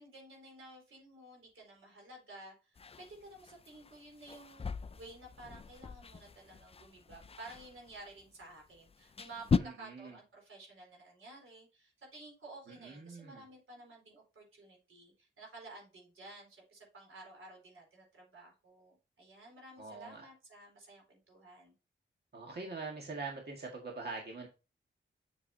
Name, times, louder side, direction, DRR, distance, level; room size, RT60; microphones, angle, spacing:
voice 1, 0.0-21.7, right 2 dB, 85° right, 0 dB, 4.2 m, -53 dB
sound 1, 2.8-9.6, left 5 dB, 30° left, 0.4 m, -39 dB
voice 2, 9.6-10.2 12.7-13.5 19.8-20.3 22.3-24.5, right 3 dB, 50° right, 0 dB, 1.8 m, -43 dB
7.5 x 6.7 x 2.8 m, 0.31 s
cardioid pair, 75°, 21 cm